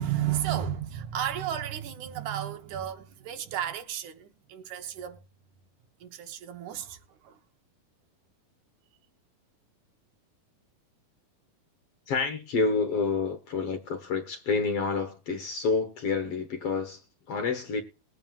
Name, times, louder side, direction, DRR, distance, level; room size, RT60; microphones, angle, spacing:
voice 1, 0.0-5.2 6.0-7.4, right 10 dB, 70° right, 2.3 m, -33 dB
voice 2, 12.1-17.0 17.3-17.8, left 4 dB, 60° left, 1.7 m, -28 dB
20.5 x 9.1 x 2.4 m
omnidirectional pair, 3.7 m